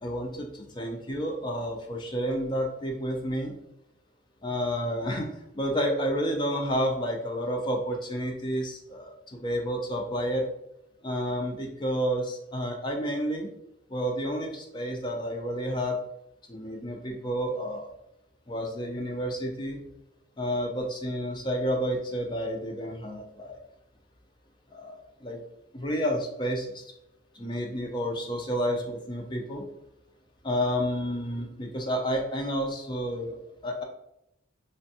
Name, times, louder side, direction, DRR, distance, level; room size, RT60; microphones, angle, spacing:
voice 1, 0.0-3.5 4.4-5.3 5.5-10.5 11.0-13.5 13.9-16.0 16.5-17.9 18.5-19.8 20.4-23.6 24.7-25.4 25.7-26.9 27.3-29.6 30.4-33.4 33.6-33.8, equal, 20° left, 1 dB, 0.4 m, -30 dB
3.4 x 2.2 x 2.7 m, 0.84 s
head